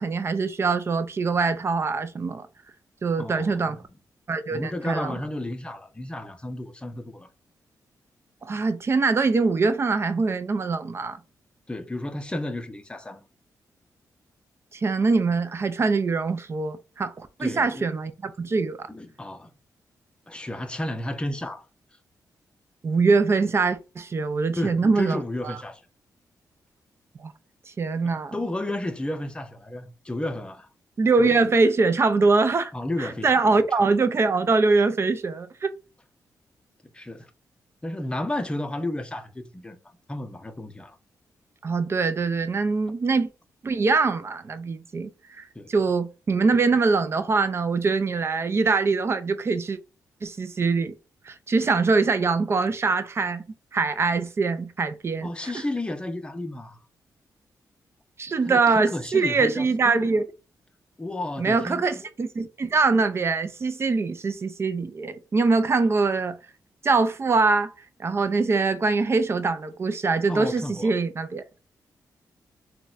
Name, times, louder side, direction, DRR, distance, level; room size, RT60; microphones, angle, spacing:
voice 1, 0.0-2.5 3.0-3.8 4.3-5.1 8.4-11.2 14.7-18.9 22.8-25.6 27.2-27.3 27.8-28.4 31.0-32.7 33.0-35.7 41.6-43.3 43.6-45.1 45.4-49.8 50.2-50.9 51.3-53.4 53.7-55.5 58.2-60.3 61.4-66.4 66.8-67.7 68.0-71.4, right 4 dB, 40° right, 0.4 m, -23 dB
voice 2, 3.2-3.8 4.5-7.3 11.7-13.2 17.4-17.9 18.9-19.5 20.3-21.6 24.6-25.8 28.0-30.7 32.7-33.9 36.9-37.3 37.8-39.8 40.1-41.0 45.5-45.7 55.2-56.8 58.5-59.7 61.0-62.1 70.3-70.9, left 1 dB, 15° left, 0.6 m, -32 dB
3.9 x 2.2 x 2.5 m
cardioid pair, 80°, 7 cm